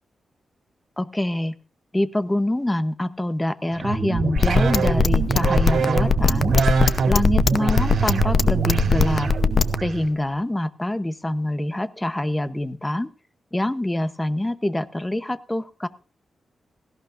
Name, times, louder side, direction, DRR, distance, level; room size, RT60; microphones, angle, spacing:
voice 1, 1.0-1.6 1.9-6.6 7.1-9.3 9.8-13.1 13.5-15.9, left 1 dB, 10° left, 13 dB, 0.8 m, -25 dB
sound 1, 3.7-10.1, right 5 dB, 75° right, 3.1 m, -24 dB
sound 2, 4.4-9.8, left 5 dB, 50° left, 0.7 m, -18 dB
17.5 x 16.0 x 2.5 m, 0.35 s
wide cardioid pair, 115°, 0 cm